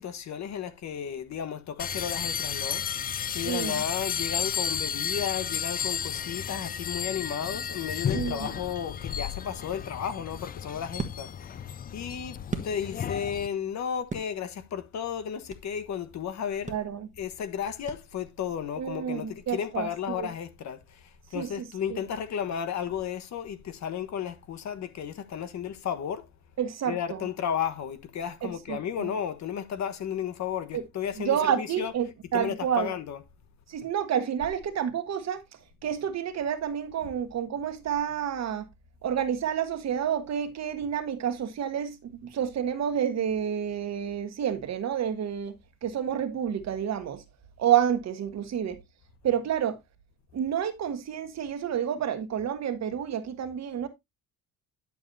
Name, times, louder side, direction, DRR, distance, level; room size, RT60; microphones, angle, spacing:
voice 1, 0.0-2.8 3.3-11.7 11.9-16.8 17.2-26.3 26.8-33.2 34.4-34.5 37.0-37.1, left 8 dB, 50° left, 1.3 m, -33 dB
sound 1, 1.8-13.5, left 8 dB, 25° left, 0.4 m, -33 dB
voice 2, 3.5-3.8 8.1-8.5 16.7-17.1 18.8-19.9 20.2-20.3 21.3-21.5 26.6-27.0 28.4-29.1 30.7-30.8 31.2-32.1 32.3-32.9 33.7-35.4 35.8-38.6 39.0-45.5 45.8-47.2 47.6-48.8 49.2-49.8 50.3-53.9, right 9 dB, 45° right, 1.4 m, -29 dB
sound 2, 10.9-13.3 13.6-15.8 16.2-16.3 16.6-18.5, right 4 dB, 20° right, 1.4 m, -40 dB
11.0 x 7.0 x 2.7 m
cardioid pair, 120°, 35 cm